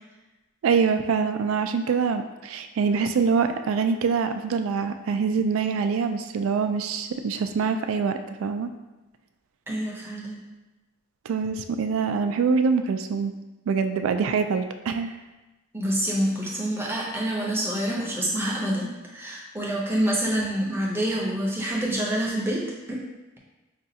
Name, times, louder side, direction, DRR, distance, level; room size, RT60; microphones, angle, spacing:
voice 1, 0.6-8.7 11.3-13.3 13.7-15.1, right 5 dB, 80° right, 7 dB, 0.3 m, -24 dB
voice 2, 9.7-10.4 15.7-23.0, right 1 dB, 10° right, -4 dB, 0.6 m, -27 dB
5.0 x 2.3 x 2.7 m, 1.1 s
head